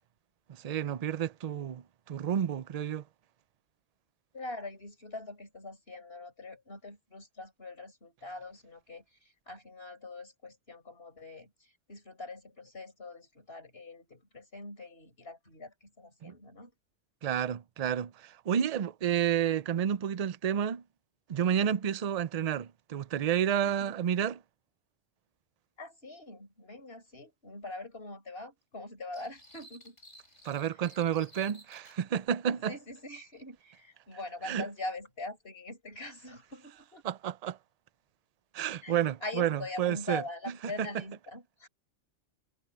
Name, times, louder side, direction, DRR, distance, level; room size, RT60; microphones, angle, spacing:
voice 1, 0.5-3.0 16.2-16.3 17.2-20.8 21.3-24.4 30.4-32.7 34.4-34.6 37.0-37.6 38.5-40.2 40.8-40.9, right 9 dB, 45° right, 0.5 m, -30 dB
voice 2, 4.3-16.7 23.6-23.9 25.8-30.0 30.6-30.7 32.5-37.0 38.8-41.7, left 2 dB, 50° left, 5.3 m, -43 dB
sound 1, 29.1-32.0, equal, 70° left, 7.4 m, -54 dB
omnidirectional pair, 1.3 m